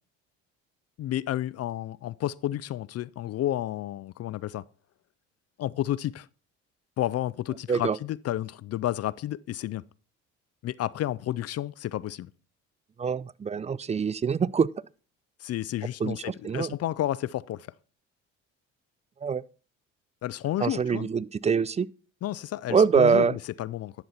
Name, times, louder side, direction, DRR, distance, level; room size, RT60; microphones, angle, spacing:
voice 1, 1.0-4.6 5.6-6.3 7.0-9.8 10.6-12.3 15.4-17.7 20.2-21.1 22.2-23.9, left 13 dB, 45° left, 0.5 m, -31 dB
voice 2, 13.0-14.7 16.0-16.7 19.2-19.4 20.6-21.9 22.7-23.4, right 6 dB, 20° right, 0.4 m, -24 dB
11.0 x 7.0 x 4.2 m
hypercardioid pair, 55°, 36 cm